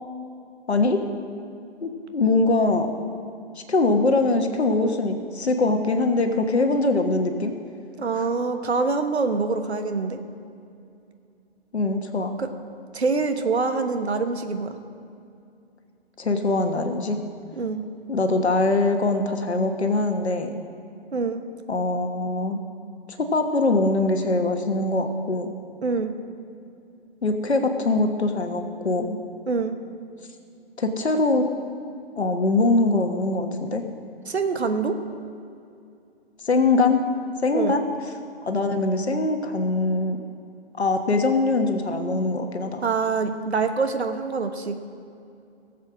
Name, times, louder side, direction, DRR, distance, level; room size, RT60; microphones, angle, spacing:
voice 1, 0.7-1.0 1.8-2.9 3.7-7.5 8.1-8.2 11.7-12.4 16.2-17.2 18.1-20.6 21.7-22.6 23.2-25.5 27.2-29.2 30.8-31.4 32.2-33.8 36.4-37.0 37.4-37.8 38.4-40.2 40.8-42.8, left 2 dB, 80° left, 5 dB, 1.4 m, -22 dB
voice 2, 8.0-10.2 12.4-12.5 12.9-14.7 17.5-17.8 21.1-21.4 25.8-26.1 29.5-29.8 34.3-35.0 37.5-37.8 42.8-44.8, right 4 dB, 80° right, 7 dB, 1.2 m, -25 dB
17.5 x 7.5 x 6.2 m, 2.5 s
figure-of-eight pair, 130°, 33 cm